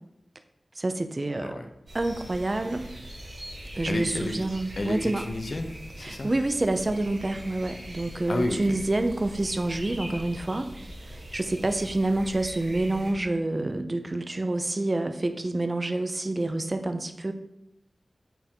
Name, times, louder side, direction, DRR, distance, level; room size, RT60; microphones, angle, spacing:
voice 1, 0.8-1.5 1.9-2.9 3.7-5.2 6.0-10.7 11.0-17.3, right 2 dB, 35° right, 8 dB, 0.6 m, -28 dB
voice 2, 1.4-1.7 3.9-4.4 4.8-6.3 8.3-8.8, left 1 dB, 55° left, 5 dB, 0.8 m, -31 dB
sound 1, 1.9-13.1, right 1 dB, 70° right, 2.4 m, -42 dB
9.1 x 3.6 x 4.5 m, 0.82 s
wide cardioid pair, 75°, 0 cm